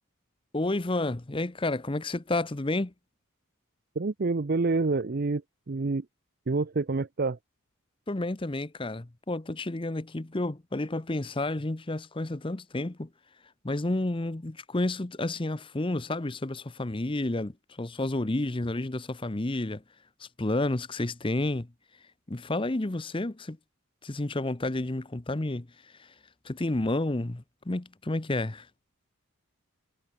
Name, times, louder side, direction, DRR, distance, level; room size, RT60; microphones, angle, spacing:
voice 1, 0.5-2.9 8.1-13.1 13.6-19.8 20.2-21.7 22.3-23.6 24.0-26.1 26.4-28.7, left 2 dB, 25° left, 0.7 m, -30 dB
voice 2, 4.0-5.4 5.7-6.1 6.5-7.4, right 3 dB, 45° right, 0.6 m, -27 dB
head